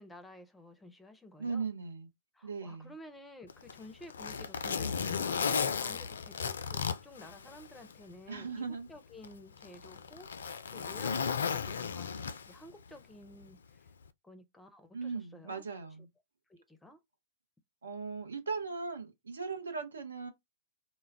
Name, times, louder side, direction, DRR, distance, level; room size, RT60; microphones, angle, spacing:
voice 1, 0.0-1.7 2.3-13.9 14.2-15.6 16.5-17.0, left 1 dB, 10° left, 0.5 m, -53 dB
voice 2, 1.4-2.1 2.4-2.9 8.3-8.9 14.9-16.1 17.8-20.3, right 4 dB, 80° right, 0.7 m, -38 dB
Zipper (clothing), 3.5-8.0 8.4-8.5 9.2-12.7 13.9-14.1, left 6 dB, 70° left, 0.3 m, -35 dB
2.2 x 2.0 x 3.4 m
figure-of-eight pair, 105°, 0 cm